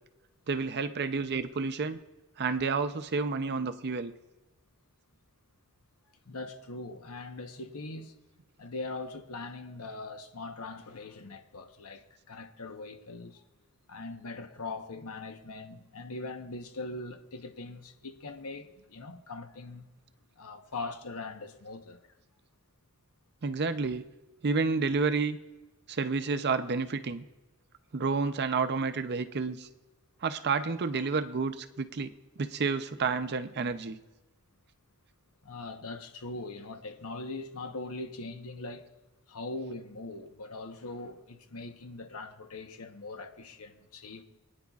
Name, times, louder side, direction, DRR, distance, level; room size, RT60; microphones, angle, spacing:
voice 1, 0.5-2.0 2.4-4.1 23.4-24.1 24.4-25.4 25.9-27.2 27.9-29.7 30.2-34.0, right 4 dB, 50° right, 0.6 m, -30 dB
voice 2, 6.3-8.1 8.6-13.4 13.9-19.9 20.4-22.0 35.4-38.9 39.3-44.2, left 2 dB, 75° left, 1.0 m, -41 dB
24.0 x 9.5 x 2.4 m
head